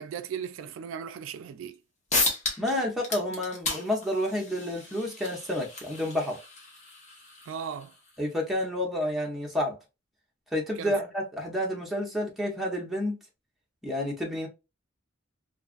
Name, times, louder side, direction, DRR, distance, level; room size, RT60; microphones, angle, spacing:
voice 1, 0.0-1.8 7.5-7.9 10.8-11.0, right 7 dB, 80° right, 0.3 m, -37 dB
sound 1, 1.7-1.8 2.1-2.7 3.0-8.2, left 3 dB, 35° left, 0.9 m, -33 dB
voice 2, 2.6-6.4 8.2-9.8 10.5-13.2 13.8-14.5, left 1 dB, ahead, 0.8 m, -30 dB
2.5 x 2.4 x 2.3 m
head